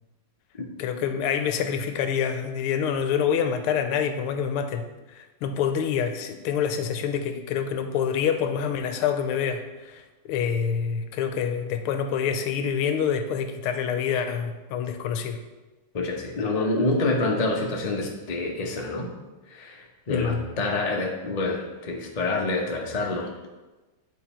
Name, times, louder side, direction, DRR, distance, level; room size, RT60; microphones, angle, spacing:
voice 1, 0.8-15.4 20.1-20.4, left 7 dB, 85° left, 8 dB, 1.5 m, -27 dB
voice 2, 15.9-19.1 19.5-23.3, left 2 dB, 70° left, 0 dB, 0.3 m, -27 dB
9.4 x 4.0 x 4.3 m, 1.2 s
omnidirectional pair, 2.4 m